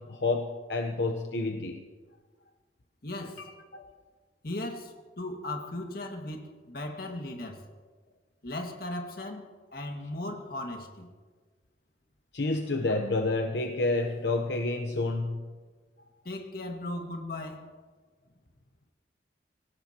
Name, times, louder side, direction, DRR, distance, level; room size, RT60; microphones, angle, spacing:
voice 1, 0.0-1.8 12.3-15.4, left 2 dB, 75° left, 4 dB, 1.0 m, -29 dB
voice 2, 3.0-3.4 3.7-3.8 4.4-7.6 8.4-11.1 16.3-17.7, left 1 dB, 55° left, 3 dB, 2.0 m, -37 dB
25.0 x 18.0 x 3.0 m, 1.4 s
head